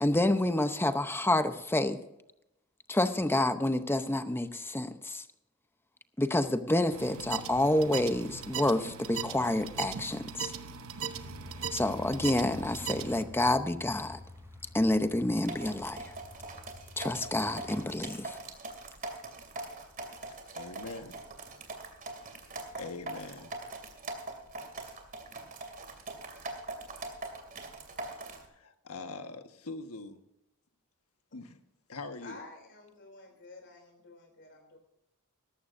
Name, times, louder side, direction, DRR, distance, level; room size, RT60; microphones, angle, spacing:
voice 1, 0.0-2.0 2.9-5.2 6.2-10.5 11.7-14.2 14.7-16.0 17.0-18.4, left 1 dB, 10° left, 10 dB, 0.7 m, -28 dB
sound 1, 6.9-13.2, right 6 dB, 65° right, 0.9 m, -39 dB
sound 2, 11.1-18.0, left 1 dB, 15° right, 3.6 m, -48 dB
sound 3, 15.4-28.5, right 2 dB, 40° right, 2.6 m, -42 dB
voice 2, 20.5-21.2 22.2-23.6 28.5-30.2 31.3-31.5 31.9-32.4, left 3 dB, 70° left, 7 dB, 1.4 m, -43 dB
voice 3, 32.2-34.8, left 3 dB, 55° left, 3 dB, 3.2 m, -51 dB
18.0 x 14.5 x 2.6 m, 0.86 s
head